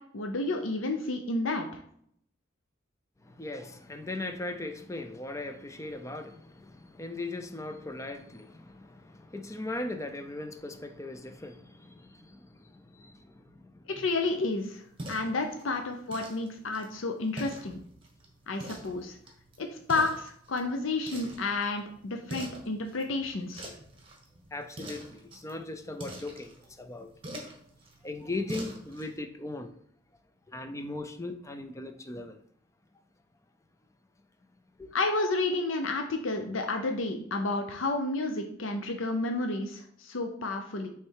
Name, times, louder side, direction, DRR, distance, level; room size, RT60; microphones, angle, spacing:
voice 1, 0.1-1.8 14.0-14.8 15.1-17.8 18.5-19.2 19.6-23.7 34.9-40.9, left 2 dB, 85° left, 0.7 m, -31 dB
voice 2, 3.2-13.8 15.1-15.2 24.5-27.1 28.0-29.7 30.5-32.4 34.8-34.9, left 2 dB, 15° left, 0.5 m, -39 dB
sound 1, 13.9-29.1, right 1 dB, 25° right, 1.3 m, -46 dB
6.4 x 3.3 x 4.7 m
head